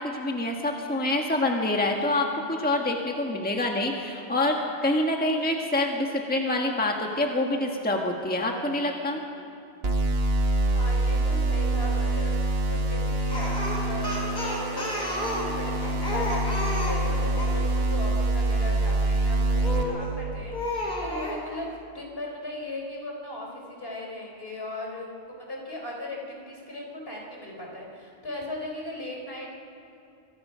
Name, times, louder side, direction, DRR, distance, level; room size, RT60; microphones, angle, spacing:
voice 1, 0.0-4.6 4.8-9.2, left 1 dB, 10° left, 1 dB, 1.5 m, -26 dB
sound 1, 9.8-19.8, right 2 dB, 65° right, 1.9 m, -25 dB
voice 2, 10.7-21.7 21.9-29.6, left 1 dB, 60° left, -1 dB, 4.1 m, -38 dB
Speech, 13.3-17.6 19.6-20.1 20.5-21.4, left 1 dB, 45° left, 4.1 m, -31 dB
25.0 x 22.0 x 5.7 m, 2.7 s
omnidirectional pair, 1.1 m